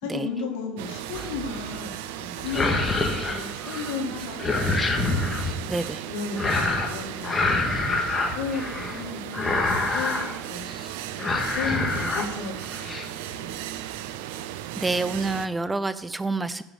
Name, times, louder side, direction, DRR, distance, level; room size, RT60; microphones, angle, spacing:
voice 1, 0.0-5.3 6.1-10.2 10.5-10.6 11.5-13.9 14.2-14.3, left 5 dB, 80° left, 2 dB, 2.2 m, -35 dB
sound 1, 0.8-15.5, right 12 dB, 80° right, 0.6 m, -36 dB
sound 2, 1.1-1.6 2.4-4.0 4.2-5.5 6.4-7.0 7.2-9.0 9.3-10.3 10.7-10.9 11.2-12.3 12.6-13.0, left 3 dB, 20° left, 1.8 m, -26 dB
voice 2, 5.7-6.0 14.8-16.6, right 3 dB, 15° right, 14 dB, 0.5 m, -27 dB
10.5 x 6.2 x 6.6 m, 0.94 s
supercardioid pair, 95°, 0 cm